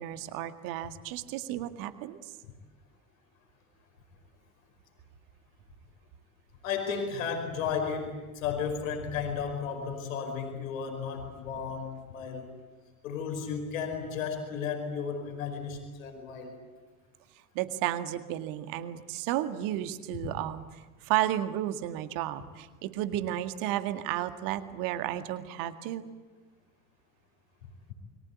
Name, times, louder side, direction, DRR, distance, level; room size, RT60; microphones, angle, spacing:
voice 1, 0.0-2.3 17.5-26.1, right 13 dB, 50° right, 10 dB, 2.1 m, -33 dB
voice 2, 6.6-12.5 13.0-16.5 20.2-20.3, left 6 dB, 65° left, 4 dB, 5.2 m, -34 dB
29.0 x 23.0 x 8.3 m, 1.3 s
figure-of-eight pair, 70°, 43 cm